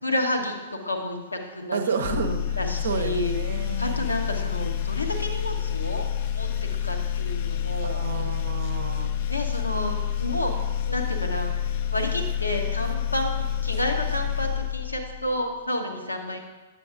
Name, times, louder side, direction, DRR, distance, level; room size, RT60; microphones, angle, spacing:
voice 1, 0.0-3.4 3.8-6.0 6.3-8.3 9.3-10.5 10.9-11.5 11.9-16.4, left 1 dB, 80° left, 2 dB, 0.9 m, -30 dB
voice 2, 1.7-2.6 2.8-4.0 7.8-9.1, right 5 dB, 60° right, 7 dB, 0.6 m, -30 dB
sound 1, 2.0-15.4, left 9 dB, 45° left, 0.4 m, -28 dB
8.4 x 6.9 x 2.4 m, 1.1 s
figure-of-eight pair, 105°, 0 cm